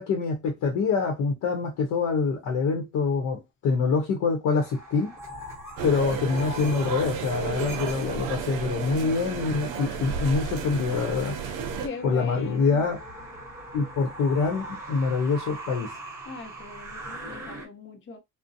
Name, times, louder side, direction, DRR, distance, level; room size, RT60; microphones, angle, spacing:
voice 1, 0.0-5.1 5.8-11.4 12.0-13.0 13.7-15.9, left 4 dB, 85° left, 0.8 m, -25 dB
sound 1, 4.5-17.7, right 1 dB, 10° right, 1.1 m, -42 dB
sound 2, 5.8-11.9, right 6 dB, 90° right, 0.6 m, -32 dB
voice 2, 11.8-12.9 16.3-18.2, left 4 dB, 40° left, 0.7 m, -39 dB
2.5 x 2.1 x 2.6 m
cardioid pair, 90°, 30 cm